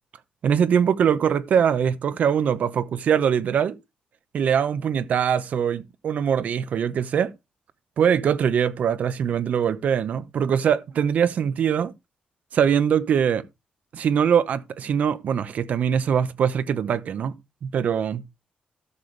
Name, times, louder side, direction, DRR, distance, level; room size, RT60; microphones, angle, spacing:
voice 1, 0.4-3.8 4.3-7.3 8.0-11.9 12.5-13.4 13.9-17.3 17.6-18.2, right 8 dB, 65° right, 0.9 m, -22 dB
12.5 x 7.0 x 3.3 m
wide cardioid pair, 150°, 3 cm